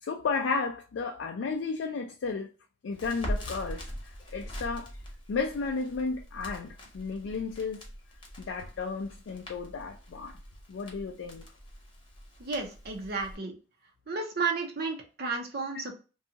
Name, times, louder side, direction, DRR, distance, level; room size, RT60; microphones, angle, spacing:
voice 1, 0.0-2.5 2.8-4.9 5.3-7.8 8.4-10.4 10.7-11.4, left 4 dB, 80° left, 0.4 m, -33 dB
Crackle, 2.9-13.3, equal, 25° left, 0.9 m, -42 dB
voice 2, 12.4-13.5 14.1-15.9, right 4 dB, 55° right, 0.7 m, -32 dB
2.7 x 2.3 x 2.7 m
head